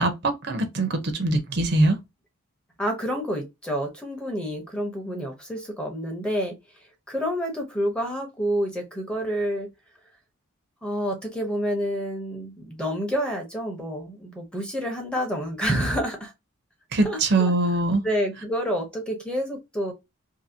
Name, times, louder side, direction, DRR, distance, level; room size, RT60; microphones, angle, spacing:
voice 1, 0.0-2.0 5.0-5.2 16.9-18.0, right 2 dB, 50° right, 0.6 m, -23 dB
voice 2, 2.8-6.6 7.1-9.7 10.8-16.3 17.0-17.5 18.0-19.9, equal, 5° left, 0.7 m, -28 dB
2.7 x 2.7 x 2.7 m
head